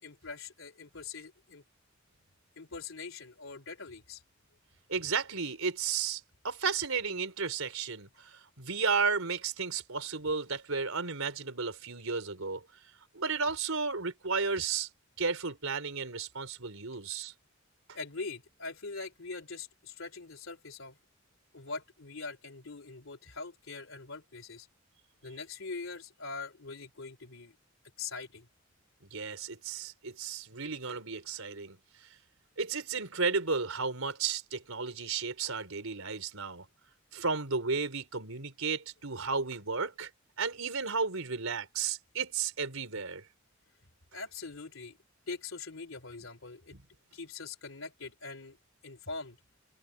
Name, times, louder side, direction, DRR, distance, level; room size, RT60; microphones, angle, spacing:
voice 1, 0.0-1.6 2.6-4.2 17.9-21.0 21.5-24.7 25.2-27.6 28.0-28.5 44.1-45.0 45.3-46.7 47.1-48.6 48.8-49.4, left 4 dB, 70° left, 3.5 m, -42 dB
voice 2, 4.9-12.6 13.1-14.9 15.2-17.3 29.1-32.1 32.6-36.7 37.1-40.1 40.4-43.2 46.7-46.8, right 5 dB, 90° right, 4.1 m, -33 dB
head